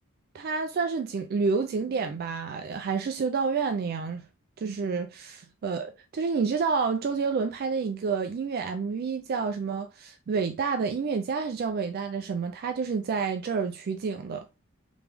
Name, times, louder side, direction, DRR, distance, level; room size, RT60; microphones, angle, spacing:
voice 1, 0.3-4.3 4.6-14.5, right 5 dB, 45° right, 0.3 m, -29 dB
3.4 x 3.0 x 3.3 m
head